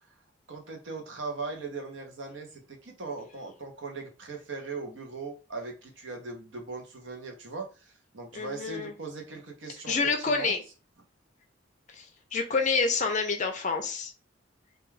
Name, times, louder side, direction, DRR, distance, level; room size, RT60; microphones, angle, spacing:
voice 1, 0.5-10.5, right 3 dB, 65° right, 2 dB, 0.7 m, -39 dB
voice 2, 8.3-8.9 9.9-10.6 11.9-12.1 12.3-14.1, left 4 dB, 35° left, 5 dB, 0.4 m, -28 dB
2.3 x 2.2 x 3.1 m, 0.35 s
head